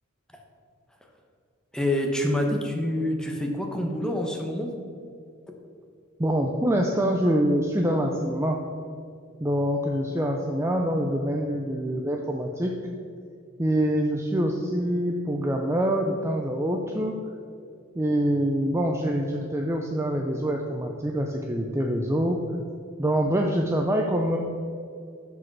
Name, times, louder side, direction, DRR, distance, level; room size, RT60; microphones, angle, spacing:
voice 1, 1.7-4.7, left 1 dB, 5° left, 1 dB, 1.0 m, -26 dB
voice 2, 6.2-8.6 9.4-12.7 13.6-17.2 17.9-22.4 23.0-24.4, equal, 15° right, 1 dB, 0.5 m, -25 dB
12.0 x 5.0 x 4.7 m, 2.3 s
head